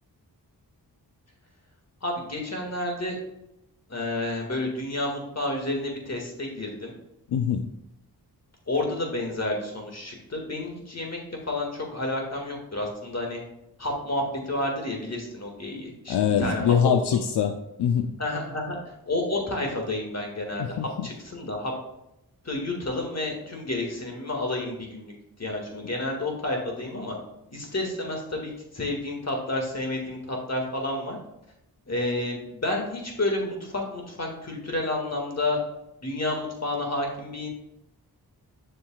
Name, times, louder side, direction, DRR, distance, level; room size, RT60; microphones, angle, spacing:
voice 1, 2.0-3.2 3.9-6.9 8.7-13.4 13.8-17.2 18.2-18.8 19.0-21.7 22.4-25.1 25.4-27.1 27.5-31.2 31.9-35.6 36.0-37.5, left 2 dB, 40° left, 1 dB, 1.9 m, -30 dB
voice 2, 7.3-7.7 16.1-18.1 20.6-21.1 25.8-25.9, left 8 dB, 80° left, 6 dB, 0.5 m, -24 dB
7.4 x 6.4 x 2.3 m, 0.85 s
cardioid pair, 60°, 40 cm